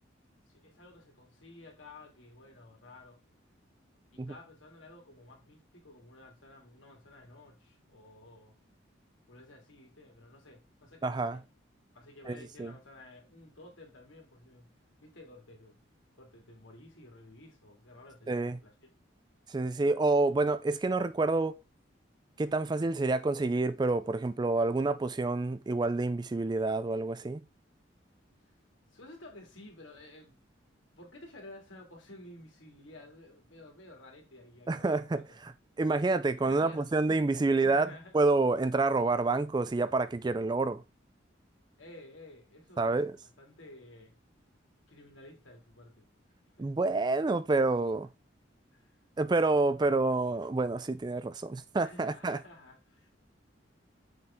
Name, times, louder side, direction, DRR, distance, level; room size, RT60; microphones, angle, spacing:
voice 1, 0.5-3.2 4.1-8.6 9.3-11.4 11.9-14.7 15.0-15.8 16.2-18.7 28.9-30.4 31.0-35.4 36.4-37.2 37.6-38.2 41.8-44.2 44.9-46.1 46.6-46.7 48.7-49.0 51.8-53.1, left 2 dB, 85° left, 2.2 m, -53 dB
voice 2, 11.0-11.4 12.3-12.7 18.3-18.6 19.5-21.6 22.4-27.4 34.7-35.5 35.8-40.8 42.8-43.1 46.6-48.1 49.2-52.4, right 3 dB, 20° right, 0.3 m, -28 dB
6.7 x 4.3 x 3.6 m
head